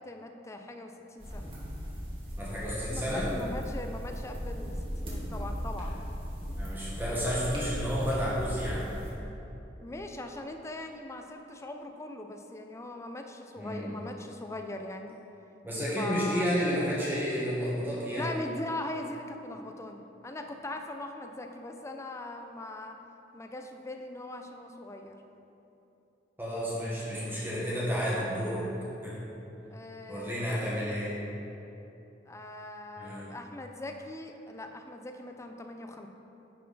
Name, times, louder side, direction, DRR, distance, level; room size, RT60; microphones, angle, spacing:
voice 1, 0.0-1.5 2.9-6.0 9.8-15.2 16.0-16.5 18.1-23.0 23.3-25.2 29.7-30.3 32.3-36.1, left 2 dB, 15° left, 4 dB, 0.5 m, -40 dB
sound 1, 1.2-9.1, equal, 30° right, 1.7 m, -37 dB
voice 2, 2.4-3.3 6.6-8.8 13.6-13.9 15.6-18.3 26.4-28.6 29.0-29.1 30.1-31.1 33.0-33.3, equal, 10° right, -8 dB, 1.3 m, -31 dB
10.5 x 4.5 x 3.9 m, 2.9 s
head